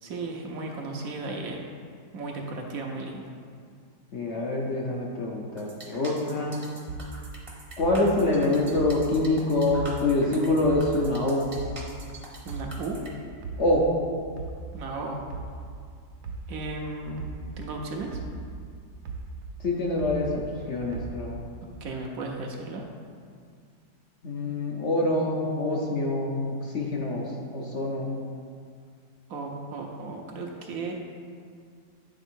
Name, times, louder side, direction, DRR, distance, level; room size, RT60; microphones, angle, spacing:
voice 1, 0.0-1.7 2.1-3.3 12.4-13.0 14.7-15.2 16.5-17.3 17.6-18.2 21.8-22.8 29.3-30.9, right 3 dB, 65° right, 1 dB, 1.0 m, -35 dB
voice 2, 4.1-6.6 7.8-11.4 13.6-13.9 19.6-21.4 24.2-28.1, left 2 dB, 55° left, -2 dB, 0.9 m, -26 dB
sound 1, 5.6-13.1, right 2 dB, 25° right, 0.8 m, -44 dB
sound 2, 6.9-10.3 10.6-13.1 13.4-17.8 18.1-20.6 20.9-21.6, right 4 dB, 90° right, 1.2 m, -38 dB
9.1 x 3.5 x 4.4 m, 2.2 s
omnidirectional pair, 1.7 m